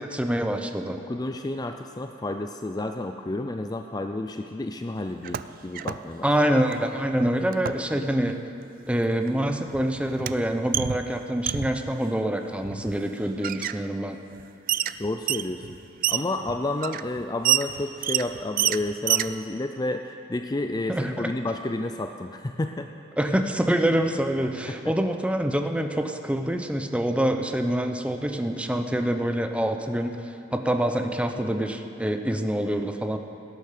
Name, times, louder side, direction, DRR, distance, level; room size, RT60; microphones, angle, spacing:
voice 1, 0.0-1.0 6.2-8.4 8.9-14.2 20.9-21.3 23.2-33.2, right 1 dB, 5° right, 6 dB, 0.8 m, -26 dB
voice 2, 1.0-6.3 15.0-15.6 16.1-22.9 24.7-24.8, left 2 dB, 20° left, 6 dB, 0.5 m, -30 dB
sound 1, 5.1-6.0 6.3-6.8 7.5-7.9 8.9-9.0 9.3-11.9 12.6-13.1 13.4-13.8 14.3-14.4 14.7-19.3, right 11 dB, 50° right, 0.4 m, -28 dB
17.0 x 10.5 x 6.7 m, 2.8 s
head